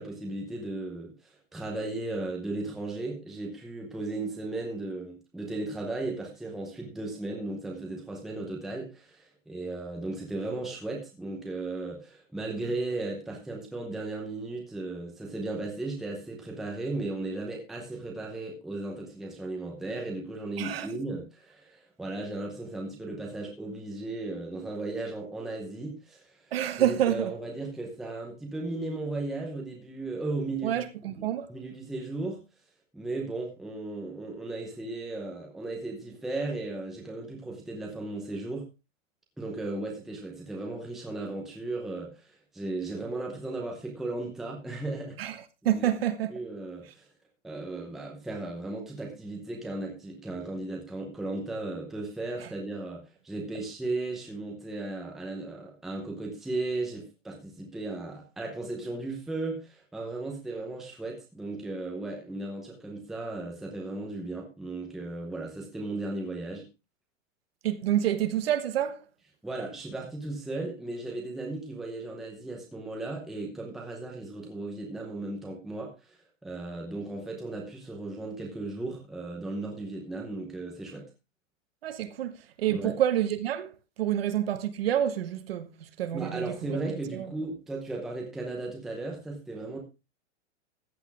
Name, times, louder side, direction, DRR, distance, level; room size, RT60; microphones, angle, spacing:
voice 1, 0.0-26.5 26.8-32.4 32.9-38.7 39.4-45.4 45.7-45.9 46.3-47.1 47.4-66.6 69.4-76.2 76.4-81.1 82.7-83.0 86.1-89.8, right 2 dB, ahead, 0.7 m, -36 dB
voice 2, 20.6-20.9 26.5-27.3 30.6-31.5 45.2-45.4 45.6-46.3 67.6-69.0 81.8-83.7 84.0-85.7 86.0-86.8 87.1-87.3, right 11 dB, 50° right, 1.2 m, -28 dB
14.5 x 8.3 x 3.4 m
supercardioid pair, 175°, 37 cm